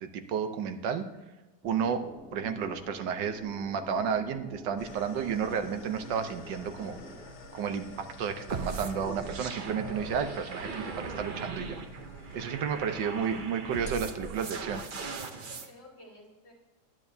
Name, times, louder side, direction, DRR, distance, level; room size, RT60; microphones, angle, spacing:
voice 1, 0.0-1.1 1.6-7.0 7.5-11.8 12.3-14.8, right 7 dB, 80° right, 8 dB, 1.5 m, -32 dB
sound 1, 1.6-7.3, equal, ahead, 0.4 m, -47 dB
sound 2, 4.8-14.4, left 1 dB, 55° left, 1.7 m, -49 dB
sound 3, 8.5-15.7, right 4 dB, 45° right, 0.6 m, -39 dB
voice 2, 12.5-13.4 15.3-16.5, left 1 dB, 75° left, -3 dB, 4.2 m, -52 dB
18.5 x 10.5 x 2.7 m, 1.1 s
omnidirectional pair, 1.9 m